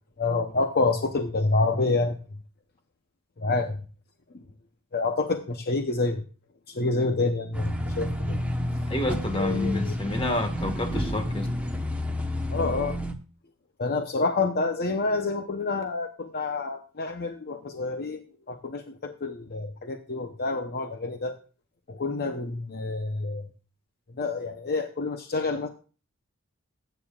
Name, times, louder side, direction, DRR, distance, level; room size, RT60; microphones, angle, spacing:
voice 1, 0.2-2.2 3.4-3.9 4.9-6.2 6.7-8.4 9.4-9.9 12.5-13.0 13.8-18.2 18.5-21.4 21.9-23.5 24.2-25.7, left 3 dB, 45° left, 5 dB, 0.8 m, -28 dB
sound 1, 7.5-13.1, equal, 5° right, 1.1 m, -30 dB
voice 2, 8.9-11.5, left 2 dB, 25° left, 5 dB, 1.6 m, -29 dB
20.5 x 9.2 x 2.4 m, 0.37 s
head